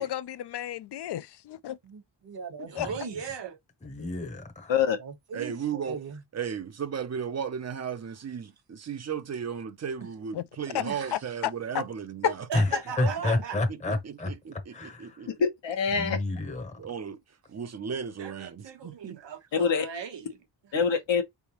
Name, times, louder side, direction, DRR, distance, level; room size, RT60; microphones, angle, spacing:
voice 1, 0.0-1.8 2.7-2.9 10.3-10.4 10.7-10.8 11.1-11.8, left 12 dB, 65° left, 0.5 m, -33 dB
voice 2, 1.8-3.2 5.0-6.2 10.0-10.1 10.8-11.3 13.0-13.4, right 5 dB, 60° right, 1.2 m, -39 dB
voice 3, 2.7-3.6 12.5-13.6 18.2-20.8, right 6 dB, 75° right, 1.2 m, -39 dB
voice 4, 3.8-4.8 12.5-12.7 13.0-15.3 16.0-16.8, left 2 dB, 15° left, 0.8 m, -30 dB
voice 5, 5.3-6.0 6.3-12.5 13.7-15.3 16.8-17.2 17.5-19.2, right 7 dB, 40° right, 0.5 m, -35 dB
voice 6, 15.4-16.2 19.5-19.9 20.7-21.2, left 6 dB, 90° left, 1.1 m, -25 dB
4.7 x 3.4 x 2.9 m
wide cardioid pair, 155°, 43 cm